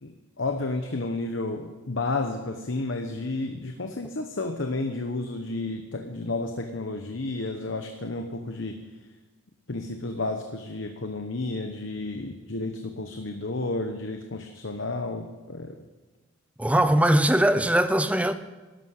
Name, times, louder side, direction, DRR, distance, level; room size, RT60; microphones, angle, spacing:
voice 1, 0.0-8.8 9.7-15.8, left 2 dB, 65° left, 1.0 m, -31 dB
voice 2, 16.6-18.3, right 1 dB, 5° right, 0.6 m, -21 dB
13.0 x 11.5 x 6.6 m
head